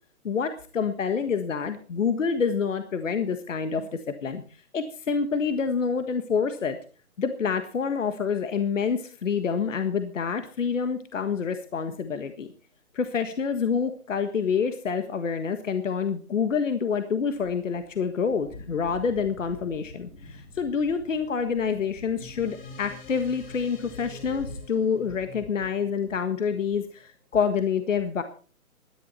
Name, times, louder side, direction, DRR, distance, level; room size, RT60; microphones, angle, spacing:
voice 1, 0.2-3.9 4.2-6.8 7.2-12.5 12.9-28.2, left 6 dB, 60° left, 9 dB, 1.6 m, -27 dB
sound 1, 17.2-24.6, left 2 dB, 15° left, 1.9 m, -47 dB
sound 2, 22.2-27.0, left 4 dB, 40° left, 7.2 m, -47 dB
17.5 x 11.5 x 4.3 m, 0.39 s
hypercardioid pair, 165°, 43 cm